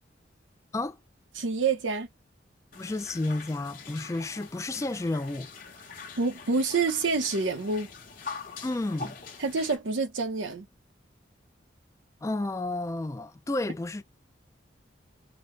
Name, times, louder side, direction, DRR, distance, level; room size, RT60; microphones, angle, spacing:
voice 1, 1.4-2.1 6.2-7.9 9.4-10.7, right 4 dB, 85° right, 0.8 m, -27 dB
sound 1, 2.7-9.7, left 4 dB, 45° left, 1.0 m, -44 dB
voice 2, 2.8-5.5 8.6-9.2 12.2-14.0, left 2 dB, 15° left, 0.3 m, -31 dB
3.9 x 2.1 x 3.1 m
head